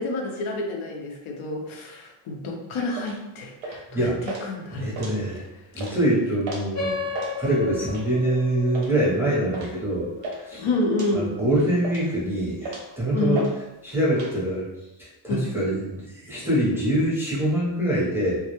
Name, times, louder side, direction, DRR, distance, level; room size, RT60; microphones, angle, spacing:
voice 1, 0.0-4.1 4.4-4.9 10.6-11.3 13.1-13.5 15.3-15.5, left 2 dB, 75° left, 1 dB, 0.6 m, -28 dB
sound 1, 2.9-3.2 3.6-3.9 4.2-4.4 4.8-5.4 5.7-6.0 6.4-6.7 7.0-7.3 7.9-8.2 8.7-8.9 9.5-9.7 10.0-10.4 10.9-11.1 11.6-12.2 12.6-12.9 13.3-13.5 13.8-14.3, right 2 dB, 90° right, 0.7 m, -35 dB
voice 2, 3.9-4.3 4.7-5.4 5.7-6.9 7.4-10.1 10.4-10.7 11.1-13.5 13.8-14.7 15.0-18.4, right 1 dB, 5° right, -8 dB, 0.5 m, -24 dB
sound 2, 6.7-11.7, left 4 dB, 35° left, 0.7 m, -35 dB
2.2 x 2.0 x 2.8 m, 0.96 s
wide cardioid pair, 140°, 49 cm